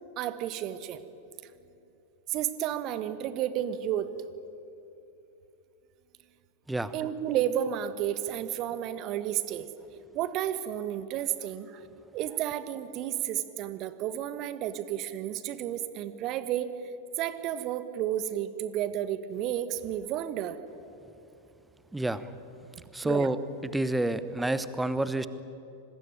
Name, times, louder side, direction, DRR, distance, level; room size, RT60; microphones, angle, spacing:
voice 1, 0.2-1.0 2.3-4.1 6.9-9.7 10.1-11.8 12.1-16.7 17.2-20.6 23.0-23.3, right 11 dB, 40° right, 13 dB, 1.4 m, -32 dB
voice 2, 21.9-22.3 22.9-23.4 23.7-25.3, right 2 dB, 5° right, 14 dB, 1.1 m, -28 dB
25.5 x 20.5 x 9.1 m, 2.8 s
figure-of-eight pair, 90°, 0 cm